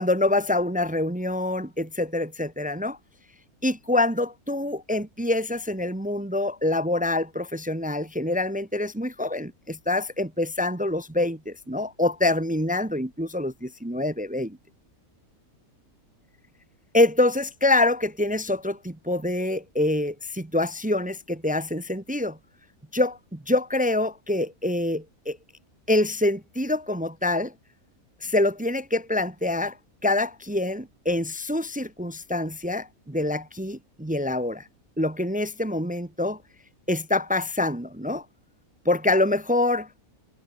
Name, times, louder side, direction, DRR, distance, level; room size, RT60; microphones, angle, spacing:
voice 1, 0.0-3.0 3.6-14.6 16.9-22.4 22.9-25.4 25.9-27.5 28.2-29.8 30.0-34.7 35.0-36.4 36.9-38.2 38.8-39.9, left 2 dB, 15° right, 0.3 m, -25 dB
omnidirectional pair, 1.5 m